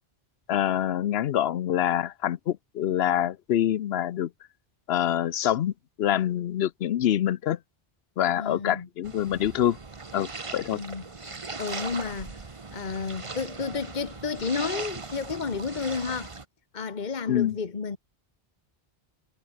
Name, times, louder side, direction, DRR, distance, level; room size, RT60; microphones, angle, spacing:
voice 1, 0.5-4.3 4.9-7.6 8.2-9.8 10.1-10.8 17.3-17.5, left 11 dB, 75° left, 0.9 m, -26 dB
voice 2, 8.4-8.9 10.7-11.0 11.6-12.4 12.7-16.3 16.7-18.0, left 5 dB, 45° left, 1.4 m, -31 dB
sound 1, 9.0-16.4, right 4 dB, 30° right, 1.2 m, -39 dB
omnidirectional pair, 1.0 m